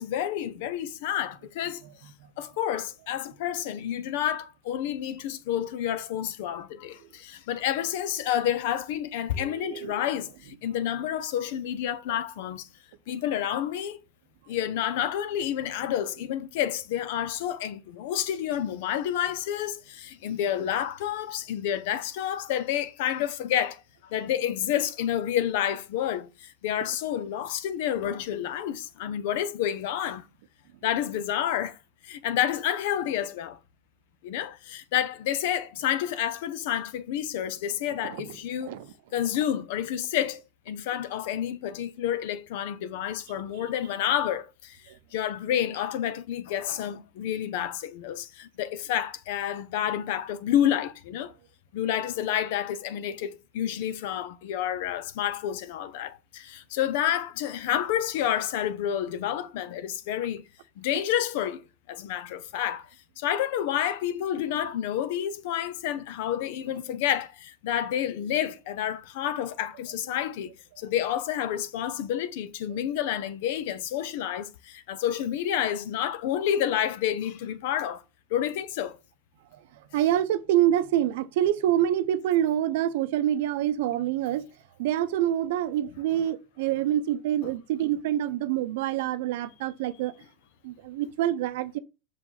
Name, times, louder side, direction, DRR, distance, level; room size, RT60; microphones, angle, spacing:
voice 1, 0.0-1.8 2.4-12.7 13.1-14.0 14.5-30.2 30.8-31.8 32.0-33.6 34.2-38.8 39.1-44.8 45.1-51.3 51.7-60.4 60.8-61.6 61.9-62.9 63.2-78.0 78.3-79.0 87.4-87.5, left 10 dB, 70° left, 0.7 m, -29 dB
voice 2, 9.3-10.0 38.0-38.2 38.6-38.9 43.6-43.7 79.9-84.5 84.8-90.1 90.6-91.8, right 12 dB, 70° right, 0.7 m, -26 dB
6.1 x 4.8 x 3.9 m
hypercardioid pair, 105°, 0 cm